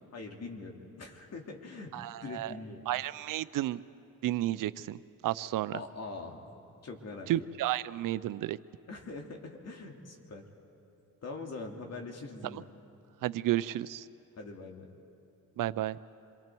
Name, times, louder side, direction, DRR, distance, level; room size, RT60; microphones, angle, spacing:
voice 1, 0.1-1.9 2.2-2.9 5.7-6.4 6.8-7.3 8.9-10.5 11.2-12.7 14.4-14.9, left 3 dB, 50° left, 2 dB, 2.7 m, -43 dB
voice 2, 1.9-2.5 2.9-3.8 4.2-5.8 7.3-8.6 12.5-12.6 13.2-14.1 15.6-16.0, right 14 dB, 70° right, 16 dB, 0.6 m, -32 dB
28.0 x 23.0 x 4.6 m, 2.8 s
cardioid pair, 80°, 33 cm